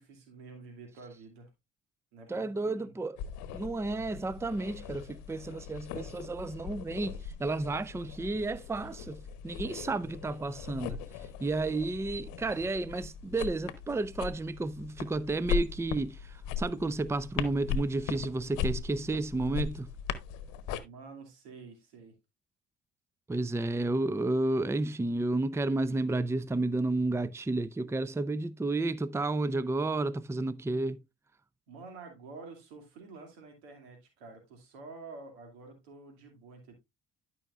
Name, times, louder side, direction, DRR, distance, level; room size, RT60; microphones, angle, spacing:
voice 1, 0.0-1.5 2.1-2.9 20.8-22.1 31.7-36.7, right 3 dB, 90° right, 2.5 m, -49 dB
voice 2, 2.3-3.2 3.5-11.0 11.4-19.9 23.3-31.0, right 2 dB, 10° right, 0.5 m, -32 dB
sound 1, 3.2-20.8, left 7 dB, 75° left, 0.9 m, -39 dB
12.5 x 5.6 x 2.4 m
hypercardioid pair, 55°, 30 cm